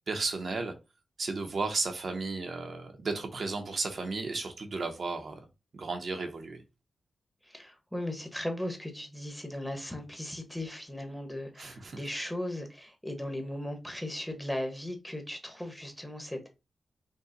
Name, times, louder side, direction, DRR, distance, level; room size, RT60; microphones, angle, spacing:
voice 1, 0.1-0.7 1.2-5.4 5.7-6.6 11.6-12.0, right 3 dB, 50° right, 0.8 m, -34 dB
voice 2, 7.4-16.5, left 1 dB, ahead, 0.9 m, -37 dB
5.3 x 2.2 x 3.8 m
wide cardioid pair, 160°, 0 cm